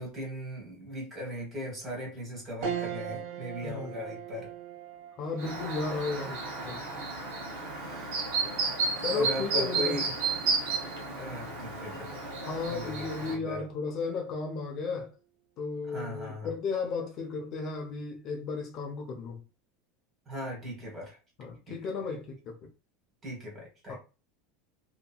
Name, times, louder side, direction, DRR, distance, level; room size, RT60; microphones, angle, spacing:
voice 1, 0.0-4.5 7.7-8.2 9.1-10.1 11.2-12.2 12.6-13.6 15.9-16.5 20.3-21.2 21.7-21.8 23.2-24.0, left 1 dB, 20° right, 1.4 m, -38 dB
sound 1, 2.6-12.2 12.7-12.8 14.1-14.6, right 8 dB, 60° right, 0.5 m, -43 dB
voice 2, 3.6-4.0 5.2-6.8 9.0-10.0 12.4-15.1 15.6-19.4 21.4-22.5 23.9-24.0, left 4 dB, 40° left, 0.6 m, -34 dB
Chirp tweet, 5.4-13.4, right 4 dB, 80° right, 1.1 m, -32 dB
2.8 x 2.6 x 2.3 m
supercardioid pair, 150°, 0 cm